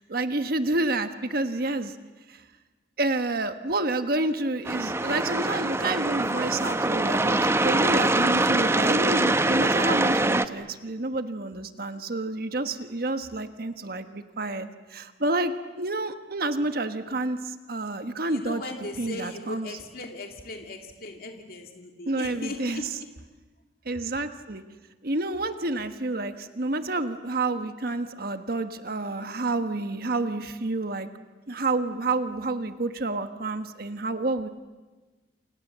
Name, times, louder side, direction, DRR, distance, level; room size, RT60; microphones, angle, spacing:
voice 1, 0.0-1.9 2.3-2.4 3.0-15.5 15.8-18.6 19.0-19.7 22.0-22.8 23.8-24.6 25.0-31.1 31.5-34.5, right 2 dB, 60° right, 8 dB, 1.4 m, -29 dB
sound 1, 4.7-10.5, right 2 dB, 15° right, 0.9 m, -24 dB
voice 2, 18.3-22.8, left 2 dB, 60° left, 3 dB, 2.6 m, -38 dB
29.0 x 28.0 x 7.5 m, 1.3 s
head